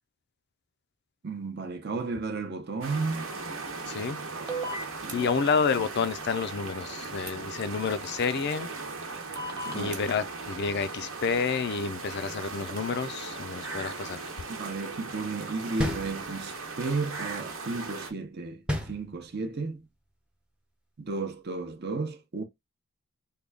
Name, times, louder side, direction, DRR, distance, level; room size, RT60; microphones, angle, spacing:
voice 1, 1.2-3.3 5.0-5.3 9.6-10.0 14.5-19.9 21.0-22.4, right 3 dB, 50° right, 0.7 m, -33 dB
sound 1, 2.8-18.1, right 3 dB, 70° right, 1.0 m, -38 dB
voice 2, 3.9-4.2 5.1-8.7 9.7-14.2, left 5 dB, 50° left, 0.4 m, -29 dB
sound 2, 4.5-5.1 7.3-7.4 9.4-10.0, right 1 dB, 20° right, 1.0 m, -34 dB
sound 3, 15.8-16.7 18.7-19.6, left 1 dB, 5° right, 0.6 m, -32 dB
3.7 x 2.3 x 3.3 m
head